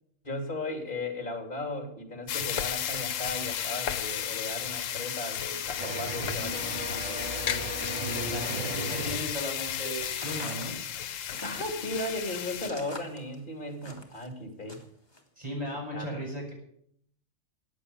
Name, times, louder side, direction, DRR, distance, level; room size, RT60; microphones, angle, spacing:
voice 1, 0.2-7.2 8.3-8.6 11.4-14.8 15.9-16.2, left 2 dB, 40° left, 4 dB, 3.0 m, -36 dB
sound 1, 2.3-12.7, left 9 dB, 85° left, 1.2 m, -33 dB
sound 2, 5.8-9.2, right 2 dB, 75° right, 2.2 m, -36 dB
voice 2, 8.0-10.7 15.4-16.5, equal, 30° right, -2 dB, 7.4 m, -36 dB
sound 3, 10.1-14.3 14.7-15.2, left 1 dB, 20° left, 2.2 m, -44 dB
15.5 x 9.5 x 7.1 m, 0.68 s
omnidirectional pair, 1.3 m